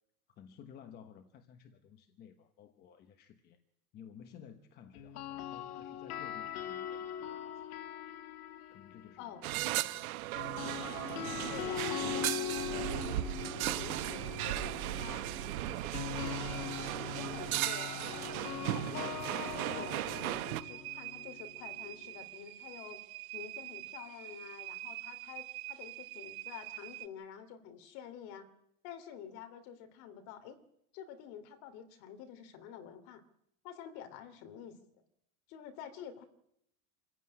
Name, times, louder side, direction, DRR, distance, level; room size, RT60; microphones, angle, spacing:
voice 1, 0.3-3.6 3.9-7.6 8.7-10.1, left 8 dB, 20° left, 8 dB, 1.1 m, -55 dB
sound 1, 4.9-9.1 10.3-22.2, left 9 dB, 85° left, 2.4 m, -41 dB
sound 2, 9.4-20.6, right 15 dB, 70° right, 1.4 m, -36 dB
sound 3, 10.9-27.1, right 17 dB, 45° right, 1.7 m, -48 dB
voice 2, 11.5-13.1 13.5-15.3 15.6-18.3 18.7-19.2 19.7-23.0 23.3-28.5 28.8-30.6 30.9-33.2 33.6-34.7 35.5-36.2, left 9 dB, 40° left, 8 dB, 2.9 m, -49 dB
26.0 x 15.5 x 9.8 m, 0.79 s
supercardioid pair, 170°, 44 cm